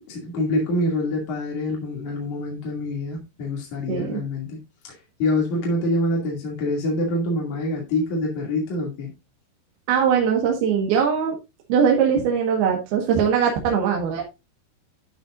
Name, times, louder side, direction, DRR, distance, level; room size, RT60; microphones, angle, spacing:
voice 1, 0.1-4.6 4.8-9.1, left 1 dB, 45° left, -1 dB, 3.5 m, -26 dB
voice 2, 3.9-4.2 9.9-11.4 11.7-14.2, right 7 dB, 70° right, 0 dB, 3.3 m, -21 dB
12.0 x 7.7 x 2.5 m, 0.24 s
omnidirectional pair, 5.0 m